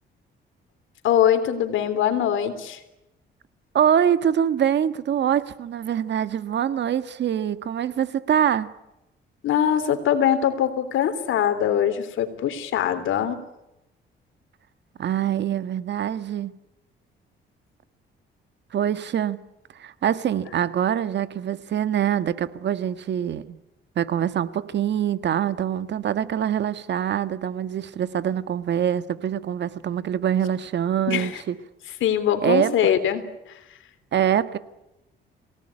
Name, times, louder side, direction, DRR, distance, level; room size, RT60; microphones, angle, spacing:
voice 1, 1.0-2.8 9.4-13.4 31.1-31.4 32.0-33.5, left 9 dB, 80° left, 10 dB, 3.4 m, -22 dB
voice 2, 3.7-8.7 15.0-16.5 18.7-19.4 19.8-23.6 23.9-31.6 32.4-32.7 34.1-34.6, right 9 dB, 60° right, 13 dB, 1.6 m, -24 dB
27.5 x 18.5 x 10.0 m, 0.94 s
cardioid pair, 90°, 20 cm